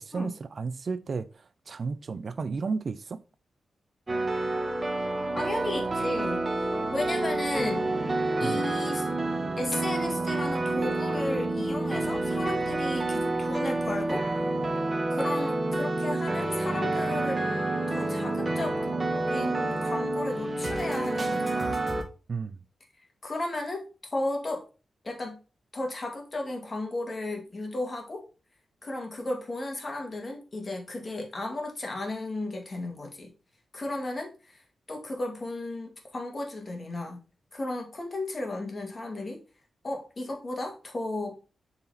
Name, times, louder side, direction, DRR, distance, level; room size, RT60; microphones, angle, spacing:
voice 1, 0.0-3.2 8.4-8.6 22.3-22.6, right 4 dB, 50° right, 0.4 m, -33 dB
sound 1, 4.1-22.0, right 2 dB, 25° right, 1.4 m, -28 dB
voice 2, 5.3-6.5 6.9-7.9 8.4-9.1 9.6-14.2 15.1-17.4 17.9-18.8 19.3-21.8 23.2-23.8 24.1-24.7 25.0-25.4 25.7-28.2 28.8-33.3 33.7-37.2 37.5-39.4 39.8-41.4, left 2 dB, 35° left, 2.0 m, -34 dB
6.9 x 4.1 x 4.1 m
wide cardioid pair, 100°, 0 cm